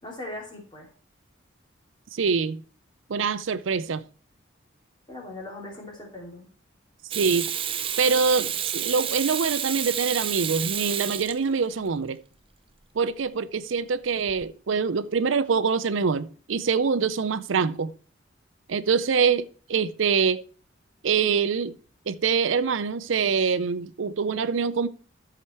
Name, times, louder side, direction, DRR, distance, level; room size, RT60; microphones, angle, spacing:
voice 1, 0.0-0.9 5.1-6.5, left 1 dB, 25° left, 2.6 m, -39 dB
voice 2, 2.1-2.6 3.1-4.0 7.1-7.5 8.0-12.2 13.0-17.9 18.7-20.4 21.0-21.8 22.1-24.9, right 5 dB, 80° right, 0.5 m, -24 dB
Water tap faucet / Sink (filling or washing), 7.1-11.9 14.3-14.4, right 9 dB, 25° right, 0.5 m, -30 dB
13.0 x 5.0 x 4.4 m
head